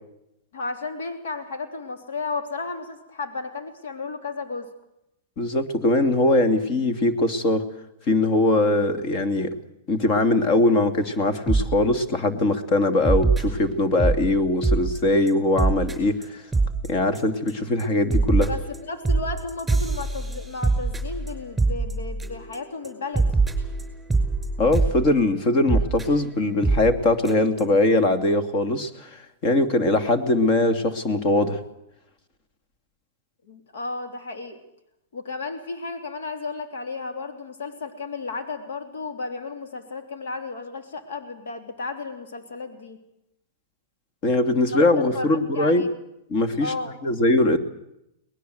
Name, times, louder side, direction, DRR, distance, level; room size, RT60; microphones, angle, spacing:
voice 1, 0.5-4.7 18.4-23.3 33.5-34.6 35.1-43.0 44.6-44.8 45.1-45.9 46.6-46.9, left 3 dB, 80° left, 6 dB, 3.2 m, -33 dB
voice 2, 5.4-7.6 8.1-9.6 9.9-16.4 16.8-18.5 24.6-29.1 29.4-31.6 44.2-45.8 46.3-46.7 47.0-47.6, left 2 dB, 40° left, 8 dB, 2.7 m, -21 dB
sound 1, 11.5-11.7 12.1-12.4 13.0-14.2 14.6-15.0 15.3-15.4 15.6-15.9 16.2-16.3 16.5-16.9 17.1-17.5 17.8-22.6 22.8-22.9 23.1-25.0 25.7-26.0 26.6-26.9 27.2-27.3 27.6-27.7, right 3 dB, 5° right, 5.6 m, -23 dB
23.0 x 20.0 x 8.0 m, 0.83 s
hypercardioid pair, 130°, 0 cm